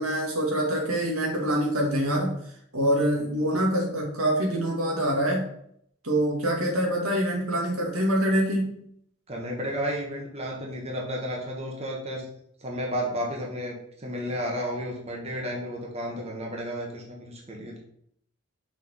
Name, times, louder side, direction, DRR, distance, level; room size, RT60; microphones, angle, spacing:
voice 1, 0.0-2.4 2.7-5.5 6.0-8.7, right 1 dB, 90° right, -1 dB, 2.2 m, -25 dB
voice 2, 9.3-12.2 12.6-17.8, equal, 30° right, -2 dB, 1.5 m, -32 dB
6.2 x 4.4 x 5.6 m, 0.69 s
head